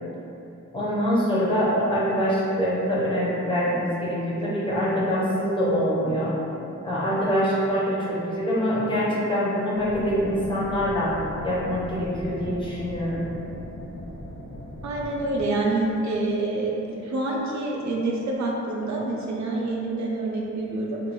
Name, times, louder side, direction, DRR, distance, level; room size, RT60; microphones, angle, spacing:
voice 1, 0.7-6.3 6.8-11.1 11.4-13.3, equal, 20° left, -8 dB, 0.4 m, -24 dB
sound 1, 9.7-15.4, equal, 80° left, 0.9 m, -39 dB
voice 2, 14.8-21.0, right 2 dB, 70° right, -2 dB, 0.5 m, -27 dB
2.5 x 2.2 x 3.0 m, 2.8 s
wide cardioid pair, 175°, 29 cm